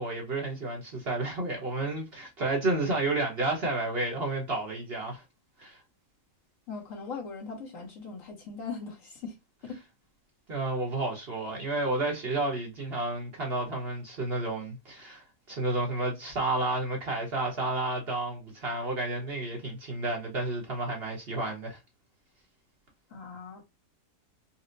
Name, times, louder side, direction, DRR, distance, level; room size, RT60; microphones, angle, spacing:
voice 1, 0.0-5.2 5.6-5.8 10.5-21.8, right 2 dB, 45° right, 1.1 m, -31 dB
voice 2, 6.7-9.4 9.6-9.8 23.1-23.6, left 4 dB, 60° left, 1.4 m, -40 dB
4.2 x 2.0 x 2.5 m
omnidirectional pair, 1.6 m